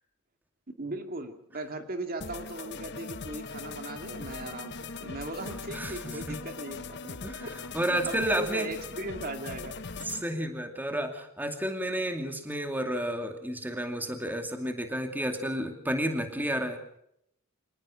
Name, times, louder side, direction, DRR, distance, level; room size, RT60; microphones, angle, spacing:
voice 1, 0.8-7.5 7.9-9.8, right 2 dB, 45° right, 6 dB, 2.3 m, -38 dB
sound 1, 2.2-10.2, left 4 dB, 55° left, 1.1 m, -40 dB
voice 2, 5.7-6.4 7.2-8.7 10.0-16.8, right 1 dB, 10° right, 5 dB, 2.4 m, -31 dB
26.0 x 19.0 x 6.3 m, 0.74 s
head